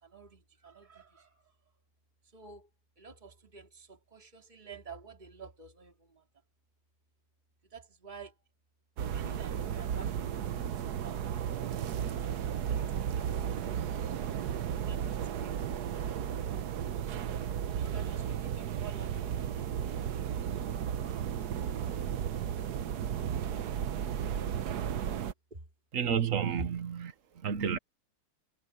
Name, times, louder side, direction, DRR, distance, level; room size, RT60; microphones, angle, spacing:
voice 1, 0.0-1.5 2.3-2.7 3.0-6.2 7.7-8.3 9.0-11.4 12.3-13.6 14.7-16.1 17.7-19.7 25.5-25.6, right 5 dB, 30° right, 2.8 m, -51 dB
sound 1, 9.0-25.3, right 9 dB, 85° right, 1.5 m, -34 dB
voice 2, 25.9-27.1 27.4-27.8, right 7 dB, 55° right, 1.5 m, -30 dB
omnidirectional pair, 1.7 m